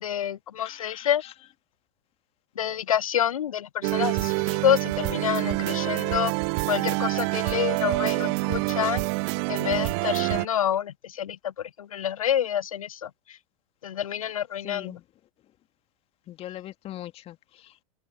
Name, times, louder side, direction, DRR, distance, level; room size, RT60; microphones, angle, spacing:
voice 1, 0.0-1.2 2.6-6.3 6.7-9.0 9.5-11.5 11.8-13.1 13.8-14.9, left 10 dB, 80° left, 0.5 m, -27 dB
voice 2, 0.6-1.3 14.2-14.3 14.6-15.0 16.3-17.8, left 13 dB, 35° left, 2.3 m, -41 dB
sound 1, 3.8-10.5, right 31 dB, 50° right, 1.0 m, -26 dB
open air
figure-of-eight pair, 95°, 17 cm